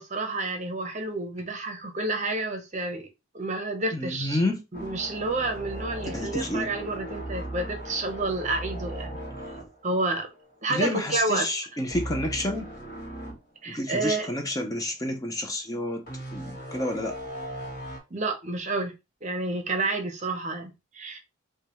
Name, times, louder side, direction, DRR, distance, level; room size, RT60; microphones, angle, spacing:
voice 1, 0.0-3.1 3.3-4.4 4.7-9.2 9.8-10.3 10.6-11.5 13.6-14.3 18.1-18.9 19.2-21.2, right 2 dB, 35° right, 0.7 m, -29 dB
voice 2, 3.9-4.6 6.1-6.7 10.7-12.7 13.7-16.0 16.3-17.2, left 1 dB, 15° left, 0.6 m, -29 dB
sound 1, 4.7-10.8 11.1-11.4 11.9-13.4 13.9-14.0 16.1-18.0, right 1 dB, 45° left, 1.5 m, -38 dB
4.9 x 2.3 x 2.9 m
head